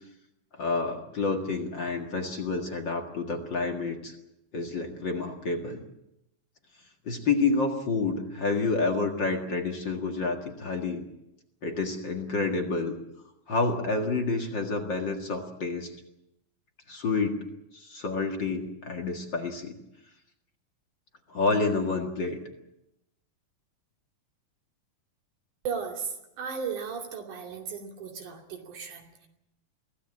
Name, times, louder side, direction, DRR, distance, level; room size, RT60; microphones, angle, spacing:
voice 1, 0.6-4.1 4.5-5.8 7.1-11.0 11.6-12.9 13.5-15.9 16.9-17.4 17.7-19.7 21.3-22.4, left 3 dB, 40° left, 4 dB, 2.1 m, -29 dB
voice 2, 25.6-29.3, right 6 dB, 70° right, 3 dB, 4.2 m, -36 dB
24.0 x 16.5 x 8.7 m, 0.85 s
omnidirectional pair, 3.7 m